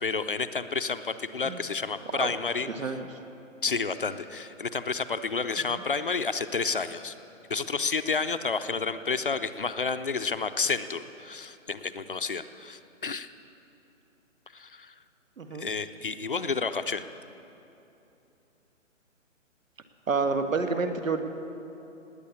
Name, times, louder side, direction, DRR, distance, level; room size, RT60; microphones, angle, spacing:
voice 1, 0.0-2.9 3.6-7.1 7.5-13.3 14.5-14.9 15.5-17.1, left 4 dB, 45° left, 11 dB, 0.5 m, -30 dB
voice 2, 2.7-3.0 5.7-5.8 15.4-15.7 20.1-21.2, right 4 dB, 90° right, 7 dB, 1.7 m, -29 dB
19.0 x 8.8 x 8.4 m, 2.9 s
hypercardioid pair, 175°, 38 cm